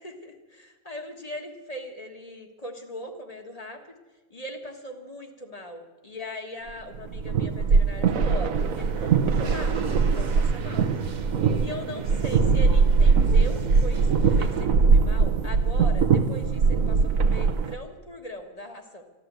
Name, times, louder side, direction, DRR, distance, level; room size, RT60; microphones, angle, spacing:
voice 1, 0.0-3.8 4.3-10.9 11.6-14.1 14.4-19.0, left 1 dB, 25° left, 5 dB, 1.5 m, -40 dB
sound 1, 6.9-17.7, right 5 dB, 70° right, 1.3 m, -21 dB
sound 2, 8.6-14.6, right 4 dB, 35° right, 0.8 m, -38 dB
13.0 x 12.0 x 8.1 m, 1.2 s
omnidirectional pair, 1.5 m